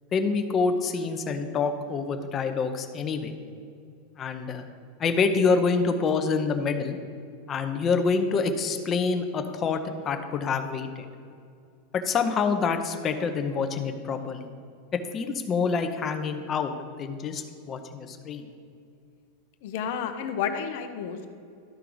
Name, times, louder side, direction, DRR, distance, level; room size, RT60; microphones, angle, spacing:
voice 1, 0.1-3.3 4.2-4.6 5.0-7.0 7.5-9.8 10.0-11.1 11.9-14.5 14.9-16.7 17.0-18.4, left 5 dB, 25° left, 6 dB, 0.7 m, -26 dB
voice 2, 19.6-21.3, left 7 dB, 65° left, 7 dB, 0.8 m, -31 dB
12.5 x 4.6 x 3.9 m, 2.4 s
supercardioid pair, 135°, 0 cm